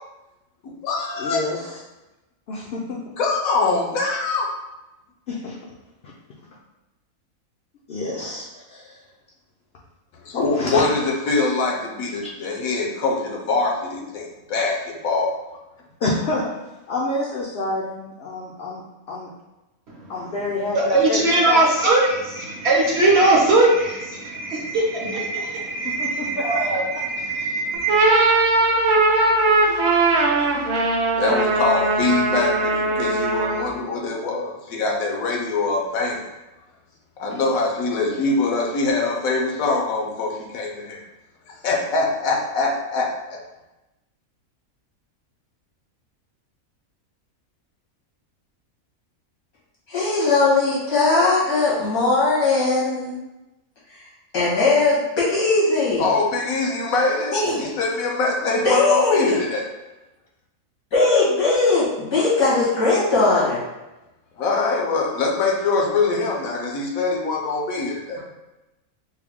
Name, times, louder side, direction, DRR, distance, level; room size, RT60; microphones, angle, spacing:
voice 1, 0.6-1.4 3.2-4.5 10.2-15.3 31.2-36.2 37.2-41.0 41.5-43.4 56.0-59.6 64.4-68.2, left 3 dB, 75° left, -1 dB, 1.1 m, -23 dB
voice 2, 1.2-1.8 2.5-3.0 5.3-5.6 7.9-9.0 10.6-10.9 12.2-12.3 16.0-16.5 16.9-18.8 19.1-19.3 20.1-21.7 25.8-26.4, left 2 dB, 60° left, -4 dB, 0.7 m, -28 dB
voice 3, 20.7-28.0, right 2 dB, 55° right, -3 dB, 1.0 m, -20 dB
sound 1, 27.7-33.8, right 2 dB, 75° right, 1.0 m, -19 dB
voice 4, 49.9-53.1 54.3-56.1 57.3-57.7 58.6-59.3 60.9-63.6, left 3 dB, 90° left, -9 dB, 2.2 m, -19 dB
4.5 x 2.1 x 3.5 m, 1.0 s
omnidirectional pair, 1.5 m